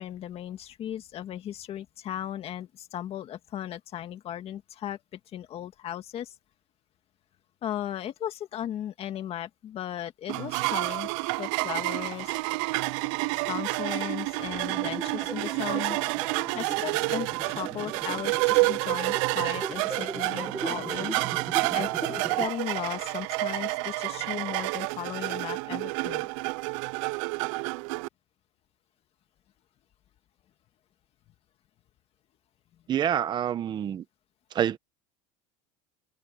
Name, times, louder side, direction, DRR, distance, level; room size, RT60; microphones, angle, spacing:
voice 1, 0.0-6.4 7.6-11.1 11.4-12.4 13.5-16.0 16.6-21.2 21.7-26.3, left 11 dB, 35° left, 2.1 m, -36 dB
sound 1, 10.3-28.1, right 25 dB, 70° right, 0.5 m, -29 dB
sound 2, 14.7-22.5, right 3 dB, 10° right, 1.5 m, -39 dB
voice 2, 32.9-34.0 34.5-34.8, right 10 dB, 25° right, 0.9 m, -27 dB
cardioid pair, 155°, 17 cm